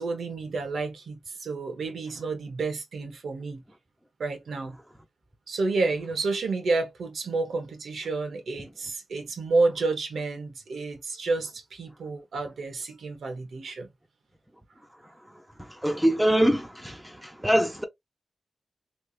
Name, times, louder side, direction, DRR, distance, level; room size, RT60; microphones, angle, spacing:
voice 1, 0.0-3.6 4.2-4.8 5.5-13.9, right 3 dB, 85° right, 0.9 m, -30 dB
voice 2, 15.3-17.8, equal, 5° right, 0.6 m, -25 dB
3.2 x 2.7 x 2.4 m
wide cardioid pair, 80°, 0 cm